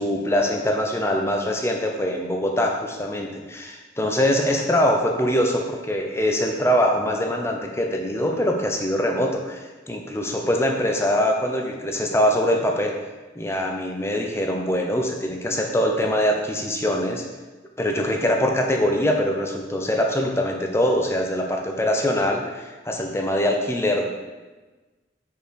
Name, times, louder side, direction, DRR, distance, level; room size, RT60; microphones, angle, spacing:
voice 1, 0.0-12.9 13.4-17.2 17.8-24.1, equal, 15° left, 1 dB, 0.6 m, -23 dB
4.7 x 4.6 x 5.1 m, 1.2 s
head